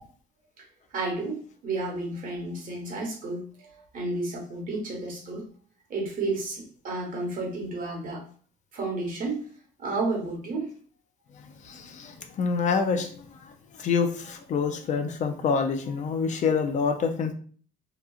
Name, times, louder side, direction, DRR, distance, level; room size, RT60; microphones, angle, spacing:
voice 1, 0.9-5.5 5.9-8.2 8.7-9.5 9.8-10.8, right 2 dB, 55° right, -1 dB, 1.2 m, -32 dB
voice 2, 11.3-17.3, left 5 dB, 45° left, 6 dB, 0.4 m, -27 dB
2.9 x 2.3 x 2.3 m, 0.44 s
cardioid pair, 110°, 17 cm